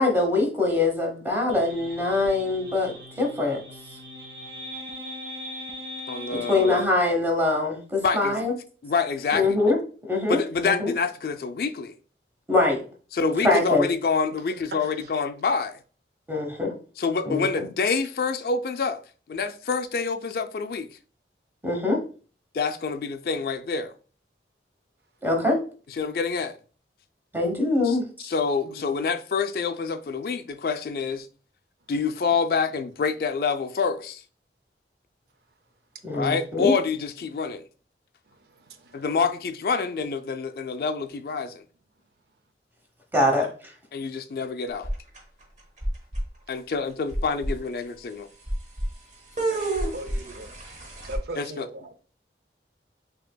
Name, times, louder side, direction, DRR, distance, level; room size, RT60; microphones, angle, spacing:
voice 1, 0.0-3.6 6.3-8.5 9.3-10.9 12.5-12.8 13.4-13.9 16.3-16.8 17.2-17.7 21.6-22.0 25.2-25.6 27.3-28.1 36.0-36.7 43.1-43.7, left 2 dB, 10° right, 0.9 m, -23 dB
sound 1, 1.5-6.9, equal, 85° right, 1.3 m, -40 dB
voice 2, 6.1-6.8 8.0-8.4 8.8-9.6 10.3-12.0 13.1-15.8 17.0-19.0 19.3-20.9 22.5-23.9 26.0-26.5 27.8-28.0 28.2-31.3 31.9-34.2 36.1-37.6 38.9-41.6 43.9-44.9 46.5-48.3 51.3-51.7, left 5 dB, 55° left, 0.3 m, -27 dB
sound 2, 44.8-45.4 45.8-46.2 46.7-46.8 47.1-47.5 48.5-48.9 49.4-51.2, right 2 dB, 40° right, 1.0 m, -29 dB
voice 3, 49.9-50.5 51.0-51.8, right 1 dB, 70° right, 0.5 m, -38 dB
5.9 x 2.8 x 2.2 m
head